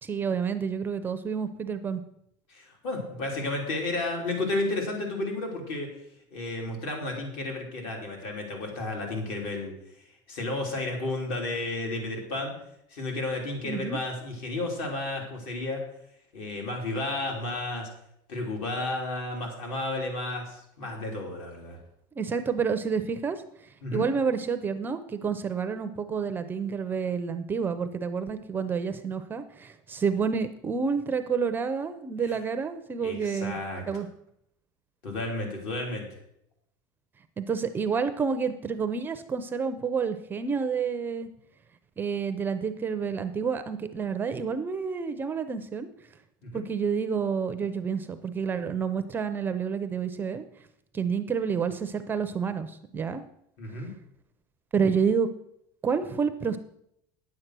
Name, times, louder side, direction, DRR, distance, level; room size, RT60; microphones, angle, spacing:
voice 1, 0.0-2.0 13.6-14.0 22.2-23.4 23.9-33.5 33.9-34.1 37.4-41.3 42.0-45.9 46.5-50.4 50.9-53.2 54.7-55.3 55.8-56.6, right 6 dB, 15° right, 10 dB, 0.5 m, -29 dB
voice 2, 2.5-5.9 6.3-9.7 10.3-12.5 12.9-15.8 16.3-17.9 18.3-21.8 23.8-24.1 32.2-32.4 33.0-33.8 35.0-36.1 46.4-46.7 53.6-53.9, left 2 dB, 60° left, 1 dB, 3.4 m, -32 dB
9.6 x 7.9 x 6.0 m, 0.76 s
cardioid pair, 160°, 11 cm